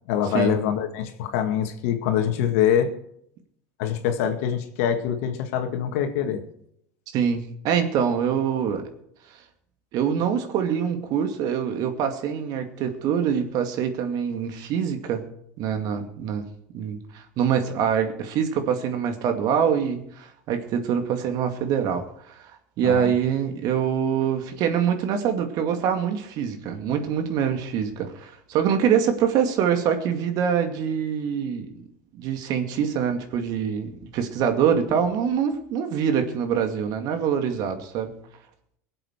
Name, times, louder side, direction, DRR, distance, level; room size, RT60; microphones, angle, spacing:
voice 1, 0.1-2.9 3.8-6.4 22.8-23.1, left 9 dB, 70° left, 6 dB, 2.0 m, -24 dB
voice 2, 7.1-8.9 9.9-15.2 15.6-16.4 16.7-22.5 22.8-31.7 32.1-38.1, right 8 dB, 55° right, 6 dB, 2.4 m, -24 dB
23.0 x 7.9 x 4.8 m, 0.71 s
hypercardioid pair, 85°, 8 cm